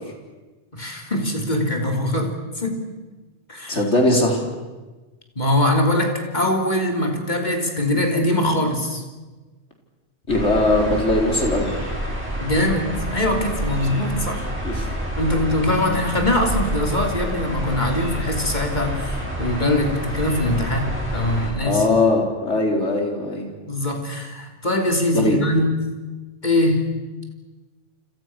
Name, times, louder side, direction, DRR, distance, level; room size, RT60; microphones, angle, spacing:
voice 1, 0.7-2.8 3.5-3.8 5.4-9.0 12.4-14.5 15.2-21.9 23.7-25.8 26.4-26.9, left 1 dB, 40° left, 2 dB, 3.5 m, -22 dB
voice 2, 3.7-4.4 10.3-11.8 14.6-14.9 21.6-23.5 25.1-25.4, left 2 dB, 90° left, 1 dB, 4.7 m, -20 dB
sound 1, 10.3-21.5, right 1 dB, 10° right, 7.1 m, -28 dB
29.5 x 26.0 x 6.2 m, 1.2 s
omnidirectional pair, 1.2 m